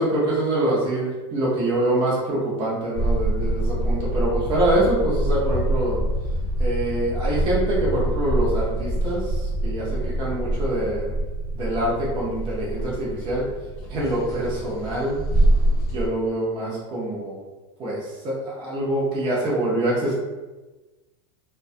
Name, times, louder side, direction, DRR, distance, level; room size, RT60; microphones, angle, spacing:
voice 1, 0.0-6.0 6.6-11.2 11.5-13.5 13.9-15.2 15.9-17.4 17.8-20.1, right 1 dB, 30° right, -6 dB, 0.6 m, -25 dB
sound 1, 2.9-16.1, right 1 dB, 20° left, 0.7 m, -25 dB
2.2 x 2.2 x 2.6 m, 1.2 s
supercardioid pair, 140°, 15 cm